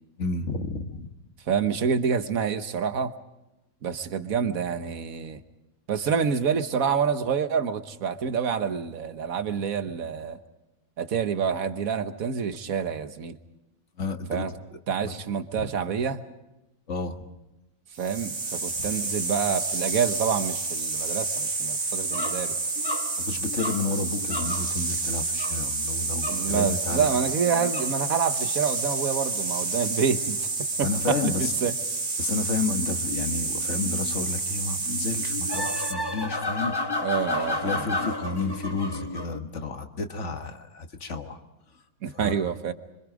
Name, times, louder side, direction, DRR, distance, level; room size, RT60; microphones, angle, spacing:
voice 1, 0.2-1.1 14.0-14.6 15.0-15.2 16.9-17.2 23.2-27.1 30.8-31.5 32.2-36.8 37.6-41.4 42.1-42.3, left 3 dB, 55° left, 6 dB, 1.8 m, -31 dB
voice 2, 1.5-3.1 3.8-5.4 5.9-10.4 11.0-13.4 14.3-14.5 14.9-16.2 18.0-22.6 26.3-30.5 30.8-31.7 37.0-37.9 42.0-42.7, right 7 dB, 70° right, 10 dB, 1.6 m, -27 dB
sound 1, 18.0-35.9, right 3 dB, 55° right, 2.3 m, -29 dB
sound 2, 22.1-24.8 25.3-25.6 26.1-26.5 27.5-28.0 30.8-31.4 32.4-34.2 34.8-39.4, left 2 dB, 20° left, 1.0 m, -33 dB
26.0 x 25.0 x 5.1 m, 0.96 s
omnidirectional pair, 1.5 m